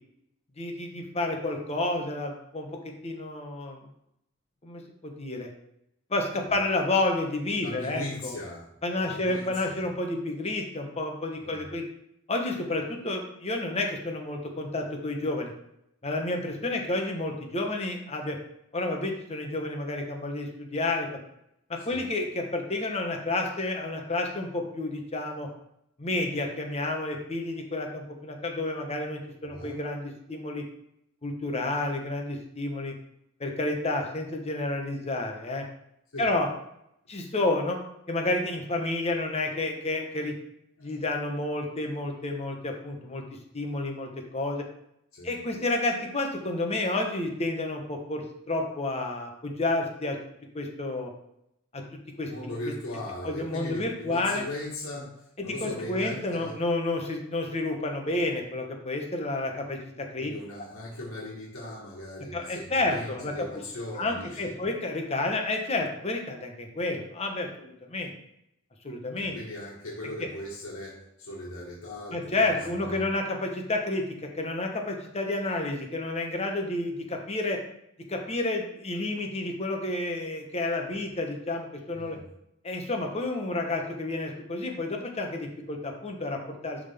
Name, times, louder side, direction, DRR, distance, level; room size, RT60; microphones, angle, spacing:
voice 1, 0.6-2.7 3.0-3.8 4.6-5.5 6.1-8.3 8.8-11.8 12.3-15.5 16.0-18.4 18.7-21.1 21.7-25.5 26.0-30.6 31.2-32.9 33.4-35.6 36.2-36.5 37.1-37.8 38.1-40.3 40.8-43.2 43.5-44.6 45.2-50.2 50.5-51.1 51.7-51.8 52.2-52.3 53.2-54.4 55.4-60.3 62.3-63.5 63.9-68.1 68.8-69.4 70.2-70.3 72.1-77.6 78.1-82.2 82.6-86.8, left 2 dB, 30° left, 2 dB, 1.1 m, -30 dB
voice 2, 7.6-8.7 9.0-9.8 11.4-11.6 21.9-22.0 29.4-29.8 36.1-36.3 40.8-41.0 45.1-45.4 52.3-56.6 60.2-64.6 69.2-73.1 81.9-82.2, left 1 dB, 80° left, -4 dB, 1.5 m, -39 dB
11.0 x 3.8 x 3.5 m, 0.79 s
head